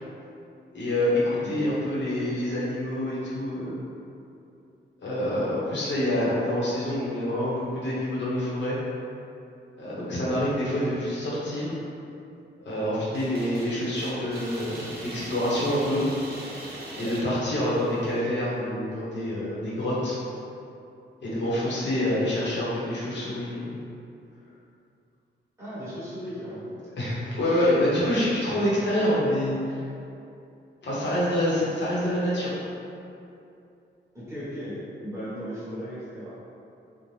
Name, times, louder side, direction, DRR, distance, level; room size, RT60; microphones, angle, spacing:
voice 1, 0.7-3.7 5.0-8.8 9.8-11.7 12.6-16.0 17.0-20.2 21.2-23.8 27.0-29.8 30.8-32.5, left 1 dB, 70° left, -8 dB, 0.8 m, -26 dB
voice 2, 1.4-1.8 16.9-17.1 25.6-26.7 32.0-32.1 34.1-36.3, equal, 15° right, -13 dB, 1.1 m, -36 dB
sound 1, 13.1-18.2, right 1 dB, 55° right, 0.5 m, -41 dB
2.6 x 2.1 x 3.1 m, 2.6 s
wide cardioid pair, 135°, 19 cm